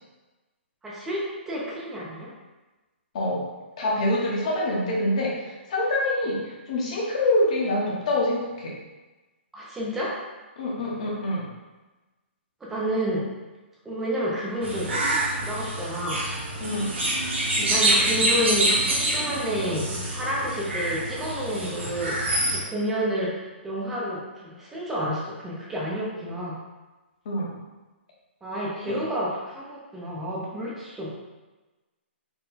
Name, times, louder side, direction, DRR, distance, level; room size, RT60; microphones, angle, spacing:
voice 1, 0.8-2.3 6.3-6.4 9.5-10.2 12.6-13.2 13.8-16.2 17.6-26.6 28.4-31.1, equal, 5° right, -5 dB, 0.3 m, -30 dB
voice 2, 3.8-5.3 5.7-8.7 10.6-11.4 16.6-16.9 27.2-27.5, left 1 dB, 35° left, -3 dB, 0.8 m, -25 dB
sound 1, 14.6-22.6, right 1 dB, 70° right, 1.3 m, -26 dB
4.4 x 2.1 x 3.8 m, 1.2 s
hypercardioid pair, 180°, 7 cm